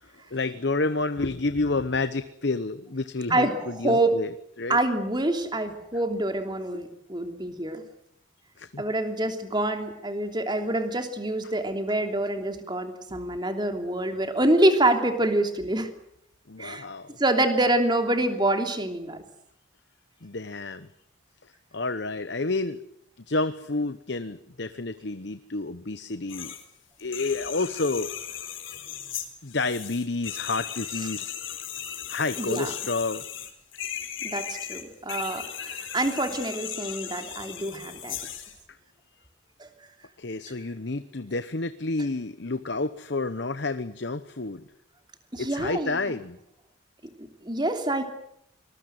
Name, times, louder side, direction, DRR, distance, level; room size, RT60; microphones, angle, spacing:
voice 1, 0.0-4.8 8.6-8.8 11.4-11.5 16.5-17.2 20.2-20.9 21.4-22.8 23.3-26.5 27.0-28.1 29.4-31.3 32.1-33.2 40.2-44.6 45.4-46.4, left 3 dB, 55° left, 12 dB, 1.0 m, -30 dB
voice 2, 3.3-4.1 4.7-7.8 8.8-15.9 16.6-16.8 17.2-19.2 32.4-32.7 34.2-38.2 39.6-39.7 45.3-46.0 47.0-48.0, right 1 dB, 20° right, 6 dB, 3.1 m, -26 dB
sound 1, 26.3-26.6 27.0-38.6, left 9 dB, 75° left, 4.1 m, -37 dB
26.0 x 20.5 x 7.9 m, 0.73 s
head